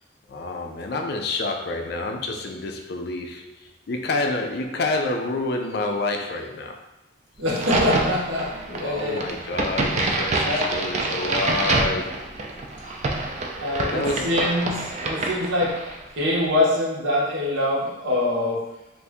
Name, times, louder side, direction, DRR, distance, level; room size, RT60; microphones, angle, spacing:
voice 1, 0.3-6.8 8.7-12.4 13.9-14.5, left 2 dB, 55° left, 3 dB, 0.4 m, -28 dB
voice 2, 7.4-9.3 10.3-10.7 13.6-15.7 16.1-18.6, left 1 dB, 90° right, -5 dB, 1.0 m, -24 dB
Crack, 7.5-16.0, right 2 dB, 35° right, 0.3 m, -27 dB
2.7 x 2.5 x 3.5 m, 0.95 s
head